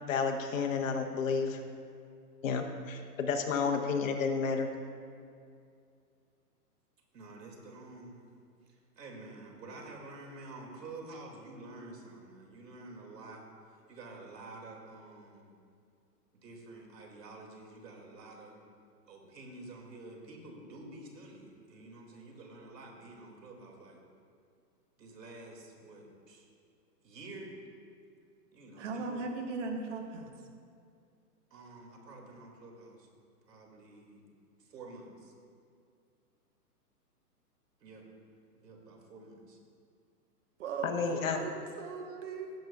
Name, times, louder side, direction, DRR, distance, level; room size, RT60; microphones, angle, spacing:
voice 1, 0.0-1.6 2.4-4.7 40.8-41.4, left 5 dB, 55° left, 5 dB, 1.1 m, -31 dB
voice 2, 7.1-8.2 8.7-13.4 13.9-15.6 16.3-18.6 19.1-24.0 25.0-26.5 27.0-27.5 28.5-29.3 31.5-33.1 33.5-34.2 34.6-35.3 37.8-38.1 38.6-39.6 41.0-41.3, right 2 dB, 80° right, 1 dB, 2.5 m, -49 dB
voice 3, 28.8-30.3 40.6-42.6, right 4 dB, 50° right, 3 dB, 1.3 m, -38 dB
17.0 x 7.7 x 2.4 m, 2.3 s
hypercardioid pair, 150°, 48 cm